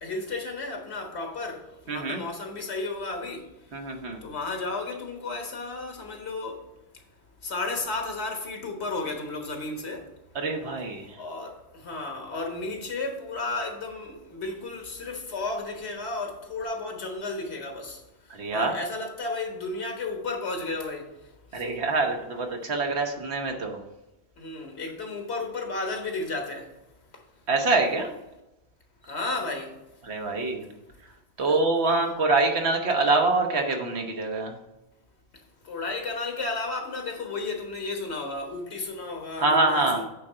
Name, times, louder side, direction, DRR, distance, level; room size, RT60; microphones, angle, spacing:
voice 1, 0.0-3.5 4.2-6.6 7.4-10.1 11.2-18.0 18.5-21.1 21.5-21.7 24.4-26.7 29.0-29.7 31.5-31.6 35.6-40.0, left 3 dB, 85° left, 1.6 m, -33 dB
voice 2, 1.9-2.2 3.7-4.2 10.3-11.2 18.3-18.7 21.5-23.8 27.5-28.1 30.0-30.7 31.4-34.6 39.4-40.0, right 3 dB, 85° right, 1.4 m, -25 dB
8.5 x 3.8 x 5.5 m
omnidirectional pair, 1.1 m